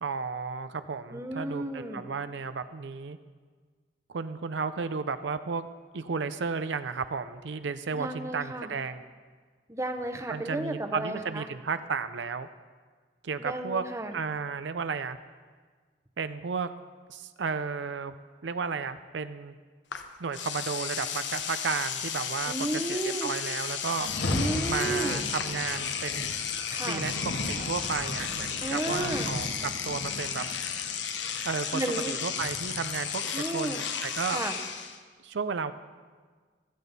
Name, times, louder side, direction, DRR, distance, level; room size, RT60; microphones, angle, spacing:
voice 1, 0.0-3.2 4.1-5.7 5.9-9.1 10.3-12.5 13.2-13.8 14.1-15.2 16.2-16.7 17.1-18.1 18.4-19.6 20.2-24.1 24.7-26.4 26.9-29.5 29.8-30.4 31.4-34.4 35.2-35.7, right 5 dB, 70° right, 11 dB, 0.5 m, -33 dB
voice 2, 1.1-2.0 7.9-8.7 9.7-11.4 13.4-14.1 22.5-23.3 24.3-25.2 26.7-27.0 28.6-29.3 31.7-32.2 33.3-33.8 34.3-34.6, right 1 dB, 15° right, 6 dB, 0.8 m, -33 dB
Engine / Domestic sounds home sounds, 19.9-20.0 20.3-35.0, left 7 dB, 75° left, 1.0 m, -34 dB
Rain, 23.9-33.0, left 1 dB, 60° left, 1.5 m, -37 dB
16.0 x 13.5 x 4.1 m, 1.5 s
head